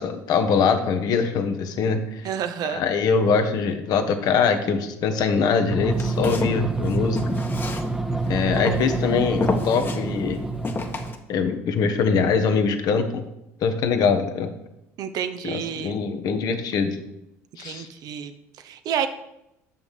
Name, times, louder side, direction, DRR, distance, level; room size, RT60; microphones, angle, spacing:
voice 1, 0.0-2.3 2.7-7.2 8.3-10.4 11.3-13.2 13.6-14.5 15.4-17.0 17.6-17.9, left 5 dB, 55° left, 7 dB, 1.2 m, -23 dB
voice 2, 2.2-2.8 8.5-8.6 15.0-15.9 17.6-19.1, right 9 dB, 55° right, 10 dB, 0.8 m, -30 dB
sound 1, 5.7-11.1, right 2 dB, 5° right, 0.9 m, -27 dB
Walk footsteps, 5.9-8.2 8.6-9.0 9.4-10.0 10.6-11.2, left 4 dB, 25° left, 1.3 m, -29 dB
6.5 x 5.6 x 7.3 m, 0.85 s
hypercardioid pair, 70°, 8 cm